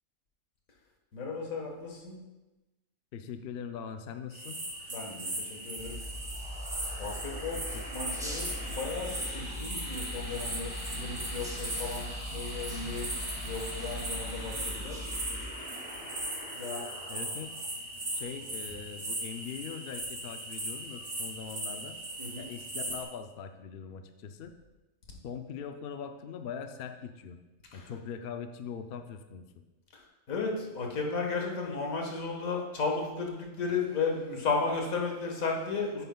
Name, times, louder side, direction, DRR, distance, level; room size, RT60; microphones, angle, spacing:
voice 1, 1.1-2.2 4.9-6.0 7.0-7.6 7.9-13.1 13.4-15.0 16.6-16.9 22.2-22.5 27.7-27.9 30.3-36.0, left 4 dB, 80° left, 0 dB, 1.8 m, -34 dB
voice 2, 3.1-4.6 7.5-7.9 17.1-17.5 18.1-22.0 22.4-24.5 25.2-27.4 27.7-29.6, left 7 dB, 60° left, 7 dB, 0.6 m, -41 dB
sound 1, 4.3-23.0, right 1 dB, 60° right, 2.3 m, -39 dB
sound 2, 5.8-15.5, equal, 5° right, 0.8 m, -41 dB
sound 3, 6.0-19.1, left 1 dB, 25° left, 1.7 m, -45 dB
9.9 x 9.2 x 2.3 m, 1.1 s
omnidirectional pair, 1.4 m